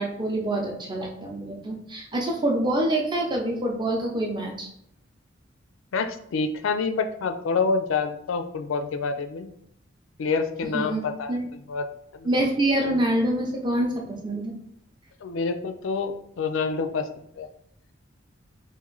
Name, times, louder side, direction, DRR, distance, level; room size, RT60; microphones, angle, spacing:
voice 1, 0.0-4.7 10.7-11.0 11.3-11.5 12.2-14.5, right 1 dB, 25° right, 0 dB, 0.6 m, -26 dB
voice 2, 5.9-9.5 10.2-11.4 11.7-11.9 12.1-12.3 15.2-17.0 17.4-17.5, left 4 dB, 75° left, 8 dB, 0.4 m, -27 dB
2.9 x 2.5 x 3.8 m, 0.73 s
head